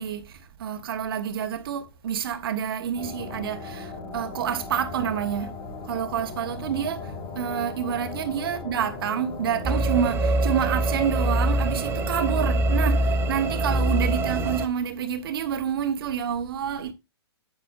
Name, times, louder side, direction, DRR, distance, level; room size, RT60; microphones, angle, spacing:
voice 1, 0.0-5.6 5.8-16.9, right 8 dB, 60° right, 1.2 m, -28 dB
sound 1, 3.0-14.6, left 1 dB, 45° left, 2.0 m, -36 dB
sound 2, 9.6-14.7, right 1 dB, 15° right, 0.9 m, -24 dB
8.6 x 8.5 x 2.5 m
hypercardioid pair, 120°, 14 cm